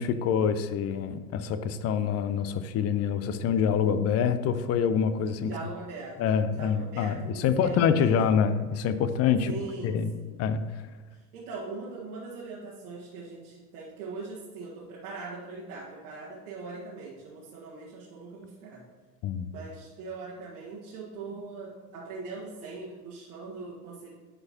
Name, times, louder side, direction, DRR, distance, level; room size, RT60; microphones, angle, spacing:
voice 1, 0.0-5.5 6.2-9.5 9.8-10.1 10.4-10.9 19.2-19.5, left 7 dB, 35° left, 11 dB, 0.5 m, -26 dB
voice 2, 5.4-6.2 6.5-8.2 9.4-10.4 11.1-18.8 19.5-24.1, right 4 dB, 65° right, -7 dB, 1.7 m, -41 dB
11.0 x 4.8 x 2.9 m, 1.3 s
hypercardioid pair, 80°, 47 cm